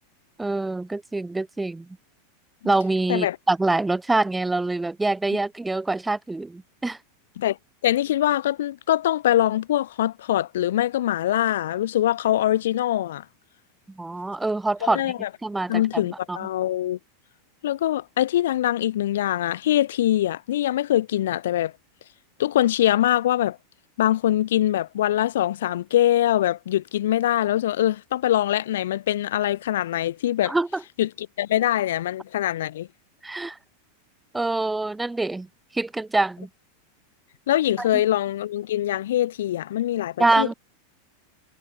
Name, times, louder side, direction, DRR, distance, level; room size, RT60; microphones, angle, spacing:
voice 1, 0.4-1.9 2.6-7.0 14.0-15.0 15.4-16.0 16.3-16.4 30.5-30.8 33.2-33.6 34.3-35.5 35.7-36.5 40.2-40.5, right 2 dB, 5° right, 2.7 m, -25 dB
voice 2, 7.8-13.2 14.9-15.3 15.7-17.0 17.6-21.7 22.4-23.6 24.0-30.5 31.0-32.9 37.5-40.5, left 12 dB, 85° left, 0.6 m, -23 dB
supercardioid pair, 160°, 0 cm